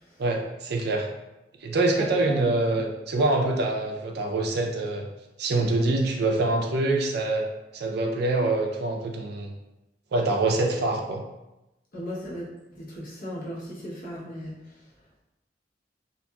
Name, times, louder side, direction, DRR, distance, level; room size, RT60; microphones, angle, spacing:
voice 1, 0.2-1.1 1.6-5.1 5.4-7.5 7.7-9.5 10.1-11.2, right 2 dB, 65° right, 2 dB, 0.4 m, -25 dB
voice 2, 2.0-2.5 2.7-2.8 11.9-12.4 12.7-14.5, equal, 50° left, -6 dB, 0.8 m, -36 dB
2.8 x 2.4 x 2.2 m, 0.96 s
head